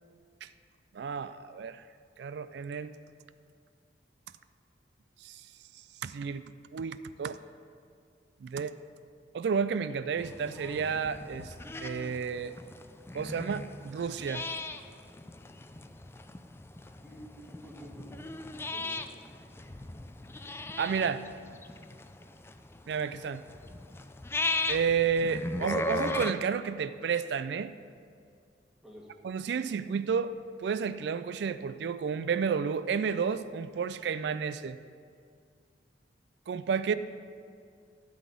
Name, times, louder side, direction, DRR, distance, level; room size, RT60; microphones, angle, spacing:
voice 1, 0.9-1.8 2.2-2.9 5.2-5.4 6.0-6.4 6.7-7.4 8.4-8.7 9.3-11.5 11.8-12.5 13.1-14.4 20.8-21.2 22.9-23.4 24.7-27.7 29.2-30.3 30.6-34.8 36.5-36.9, right 6 dB, 70° right, 13 dB, 0.3 m, -31 dB
sound 1, 10.2-26.3, left 2 dB, 15° left, 0.3 m, -37 dB
voice 2, 17.0-18.1 18.7-19.0 28.8-29.1, right 1 dB, 5° right, -3 dB, 1.5 m, -49 dB
12.5 x 4.1 x 8.2 m, 2.2 s
head